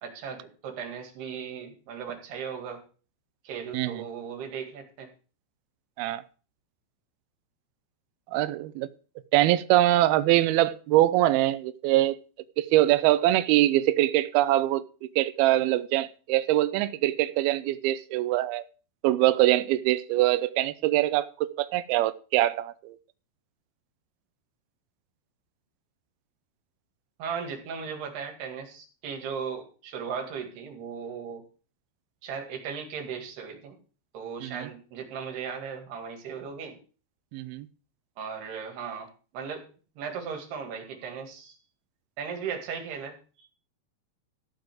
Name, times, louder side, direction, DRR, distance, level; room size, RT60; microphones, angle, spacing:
voice 1, 0.0-2.8 3.4-5.1 27.2-31.4 32.2-33.8 34.1-36.8 38.2-39.1 39.3-39.7 40.0-41.6 42.2-43.5, right 6 dB, 65° right, 4.0 m, -37 dB
voice 2, 8.3-8.9 9.3-12.1 12.6-14.8 15.2-18.6 19.0-23.0 34.4-34.7 37.3-37.7, right 15 dB, 85° right, 2.2 m, -23 dB
14.0 x 5.2 x 7.7 m
omnidirectional pair, 5.3 m